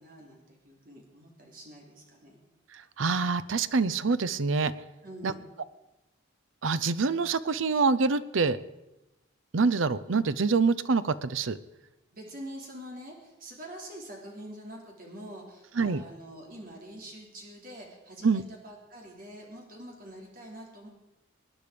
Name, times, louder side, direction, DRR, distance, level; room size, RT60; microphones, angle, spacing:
voice 1, 0.0-2.4 5.0-5.5 12.1-20.9, right 1 dB, 45° right, 0 dB, 3.4 m, -45 dB
voice 2, 2.7-4.7 5.2-5.3 6.6-8.6 9.5-11.6 15.8-16.0 18.2-18.4, right 4 dB, 75° right, 15 dB, 0.6 m, -26 dB
20.0 x 10.0 x 5.1 m, 0.97 s
head